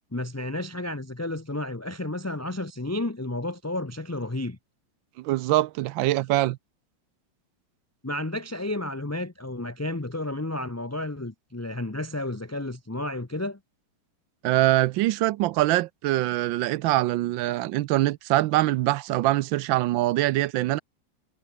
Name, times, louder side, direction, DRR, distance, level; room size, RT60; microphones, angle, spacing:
voice 1, 0.1-4.6 8.0-13.6, left 1 dB, 15° left, 0.6 m, -32 dB
voice 2, 5.2-6.6 14.4-20.8, right 16 dB, 75° right, 1.3 m, -23 dB
omnidirectional pair, 2.2 m